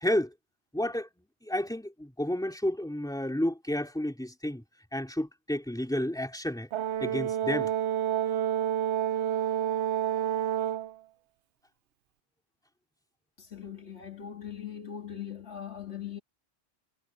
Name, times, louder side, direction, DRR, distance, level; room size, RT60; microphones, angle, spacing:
voice 1, 0.7-1.1 1.4-4.6 4.9-6.7 7.0-7.7, left 1 dB, 5° left, 2.9 m, -31 dB
Brass instrument, 6.7-10.9, right 10 dB, 90° right, 1.0 m, -29 dB
voice 2, 13.4-16.2, left 9 dB, 80° left, 2.1 m, -40 dB
omnidirectional pair, 1.1 m